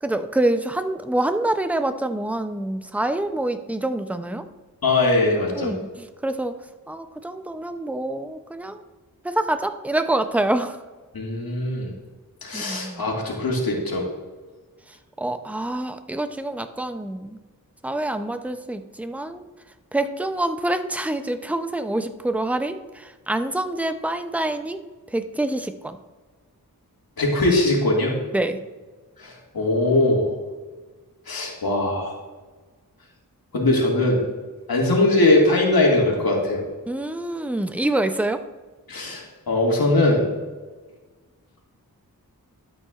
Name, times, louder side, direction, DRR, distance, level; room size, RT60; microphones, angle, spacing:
voice 1, 0.0-4.5 5.5-6.6 6.9-8.8 9.2-10.8 12.5-13.0 15.2-17.4 17.8-19.4 19.9-24.8 25.1-26.0 28.3-28.6 36.9-38.4, right 1 dB, 5° right, 8 dB, 0.5 m, -26 dB
voice 2, 4.8-5.7 11.1-11.9 12.4-14.0 27.2-28.1 29.2-30.3 31.3-32.1 33.5-34.2 34.7-36.6 38.9-40.2, left 2 dB, 80° left, -2 dB, 2.1 m, -21 dB
12.5 x 8.5 x 2.4 m, 1.3 s
wide cardioid pair, 75°, 36 cm